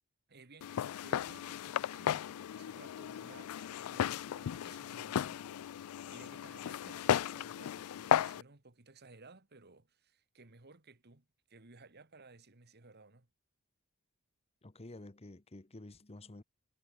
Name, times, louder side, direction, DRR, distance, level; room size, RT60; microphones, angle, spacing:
voice 1, 0.3-13.3, right 3 dB, 50° right, 1.9 m, -58 dB
Walk footsteps, 0.6-8.4, left 10 dB, 85° left, 0.3 m, -35 dB
voice 2, 14.6-16.4, left 2 dB, 30° left, 1.0 m, -50 dB
head